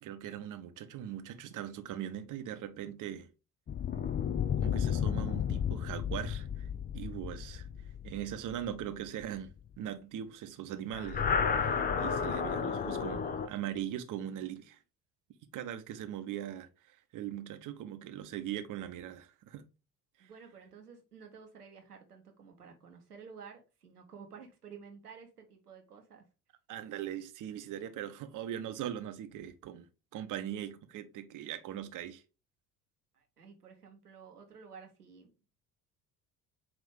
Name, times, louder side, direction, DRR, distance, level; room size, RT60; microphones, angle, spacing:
voice 1, 0.0-3.3 4.6-6.7 6.9-7.7 8.0-14.8 15.5-19.6 20.2-20.3 26.7-29.9 30.1-32.2, right 11 dB, 45° right, 1.0 m, -40 dB
sound 1, 3.7-9.2 10.9-13.5, left 7 dB, 20° left, 0.6 m, -32 dB
voice 2, 20.2-26.3 33.1-35.5, right 6 dB, 85° right, 1.2 m, -52 dB
8.7 x 3.0 x 3.5 m
figure-of-eight pair, 55°, 45 cm